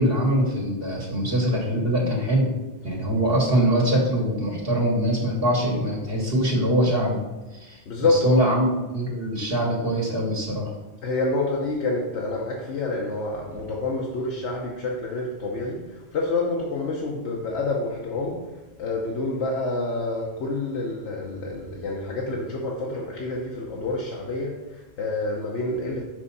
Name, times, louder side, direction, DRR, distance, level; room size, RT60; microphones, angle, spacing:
voice 1, 0.0-2.5 2.8-7.2 7.5-7.8 8.1-10.7, right 1 dB, 60° right, 1.7 m, -23 dB
voice 2, 7.9-8.5 11.0-26.0, left 2 dB, 85° left, 1.1 m, -28 dB
6.1 x 5.4 x 4.0 m
omnidirectional pair, 1.1 m